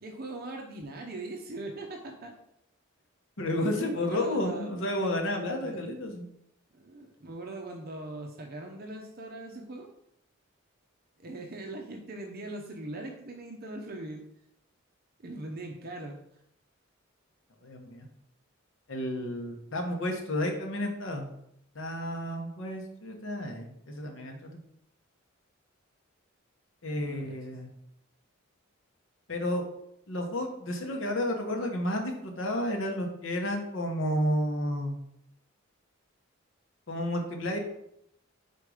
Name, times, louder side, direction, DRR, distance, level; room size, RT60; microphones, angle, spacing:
voice 1, 0.0-2.3 3.7-4.7 5.6-5.9 6.7-9.9 11.2-14.2 15.2-16.2 27.0-27.4, right 2 dB, 45° right, 2 dB, 0.7 m, -41 dB
voice 2, 3.4-6.3 17.6-18.1 18.9-21.3 21.7-24.6 26.8-27.7 29.3-29.6 30.1-35.0 36.9-37.6, left 1 dB, 65° left, 3 dB, 1.1 m, -31 dB
5.1 x 4.3 x 4.9 m, 0.77 s
head